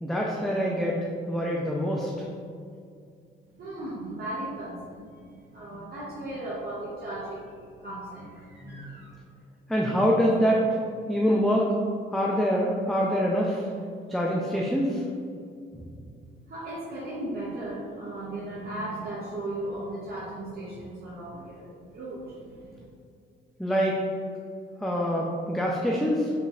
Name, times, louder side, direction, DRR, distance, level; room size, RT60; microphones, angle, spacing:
voice 1, 0.0-2.1 8.6-8.8 9.7-10.6 11.1-11.7 12.1-13.7 14.1-15.0 15.7-15.9 23.6-24.0 24.8-26.3, equal, ahead, -3 dB, 0.5 m, -25 dB
voice 2, 3.5-9.1 16.5-22.8, right 1 dB, 50° right, -7 dB, 1.0 m, -37 dB
5.3 x 3.9 x 2.4 m, 2.3 s
cardioid pair, 90°, 20 cm